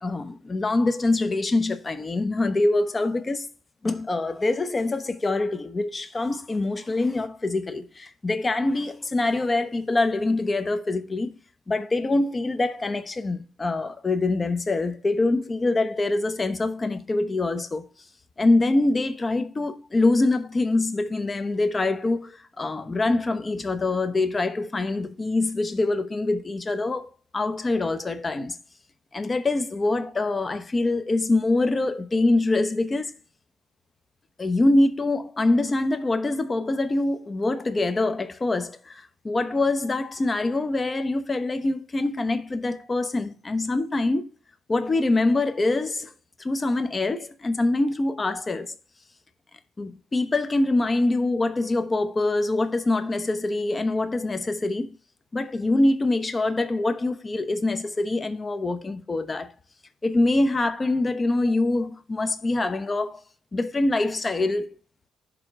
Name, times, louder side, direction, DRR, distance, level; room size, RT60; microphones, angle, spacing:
voice 1, 0.0-3.5 3.8-11.3 11.7-17.8 18.4-28.6 29.1-33.1 34.4-44.2 44.7-46.1 46.4-48.7 49.8-54.9 55.3-59.5 60.0-63.2 63.5-64.7, left 2 dB, 25° left, 0.9 m, -24 dB
6.6 x 3.7 x 6.1 m
cardioid pair, 90°, 0 cm